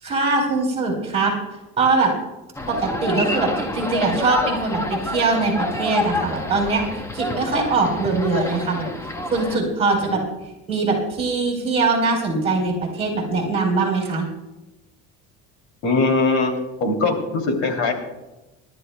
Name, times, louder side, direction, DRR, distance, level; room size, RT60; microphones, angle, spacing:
voice 1, 0.0-1.3 1.8-2.1 2.7-8.8 9.3-10.2 10.7-14.3, right 3 dB, 20° right, -2 dB, 3.8 m, -22 dB
sound 1, 2.5-9.6, left 1 dB, 10° left, 0.7 m, -28 dB
voice 2, 15.8-17.9, left 3 dB, 70° left, 3 dB, 3.0 m, -21 dB
26.5 x 12.5 x 2.3 m, 1.0 s
cardioid pair, 165°, 32 cm